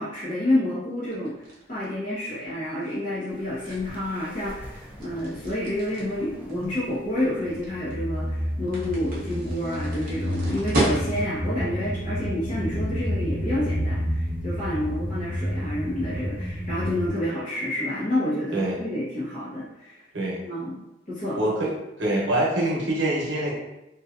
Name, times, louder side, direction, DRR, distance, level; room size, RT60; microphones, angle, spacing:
voice 1, 0.0-1.3 1.7-20.0 20.5-20.8 21.1-21.4, left 1 dB, 40° left, -10 dB, 0.7 m, -29 dB
sound 1, 1.1-11.5, right 1 dB, 50° right, 0.7 m, -35 dB
sound 2, 3.8-4.0 4.5-5.6 6.0-6.9 7.4-17.1, equal, 10° right, 0.3 m, -30 dB
voice 2, 20.1-20.4 21.3-21.7 22.0-23.5, right 1 dB, 85° right, -4 dB, 0.8 m, -25 dB
2.7 x 2.2 x 2.4 m, 0.92 s
head